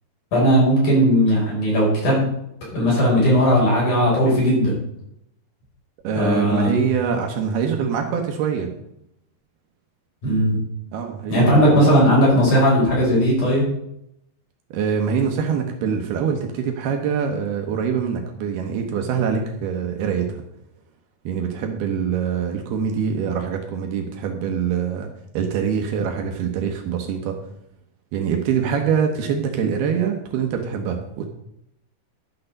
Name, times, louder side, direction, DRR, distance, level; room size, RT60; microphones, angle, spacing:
voice 1, 0.3-2.3 2.7-4.7 6.1-6.7 10.2-10.6 11.3-13.7, equal, 45° left, -5 dB, 6.6 m, -17 dB
voice 2, 6.0-8.7 10.9-11.8 14.7-20.4 21.2-25.1 25.3-27.4 28.1-31.3, right 7 dB, 70° right, 4 dB, 3.0 m, -24 dB
12.0 x 6.7 x 6.6 m, 0.78 s
omnidirectional pair, 4.9 m